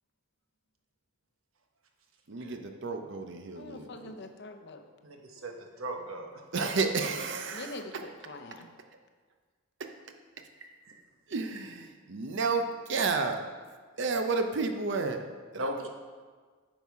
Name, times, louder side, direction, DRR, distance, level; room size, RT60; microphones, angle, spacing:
voice 1, 2.3-3.9 6.5-8.0 9.8-9.9 11.3-13.4 14.0-15.2 15.5-15.7, right 4 dB, 60° right, 5 dB, 0.6 m, -31 dB
voice 2, 3.5-4.8 7.5-8.7, left 2 dB, 55° left, 5 dB, 0.7 m, -44 dB
voice 3, 5.0-5.5 5.8-6.3 6.5-6.7 10.8-10.9 15.6-15.9, right 1 dB, 75° right, 3 dB, 1.1 m, -36 dB
8.8 x 5.5 x 4.7 m, 1.5 s
head